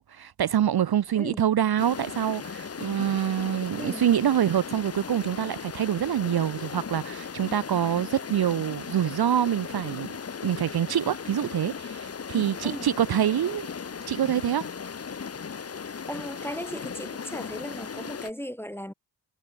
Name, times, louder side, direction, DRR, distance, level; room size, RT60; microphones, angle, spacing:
voice 1, 0.0-10.1 10.4-13.7 14.1-14.7, right 10 dB, 55° right, 0.6 m, -26 dB
sound 1, 1.8-18.3, left 6 dB, 35° left, 0.7 m, -37 dB
voice 2, 3.8-4.1 12.6-12.9 16.1-18.9, equal, 5° left, 1.0 m, -36 dB
cardioid pair, 40°, 46 cm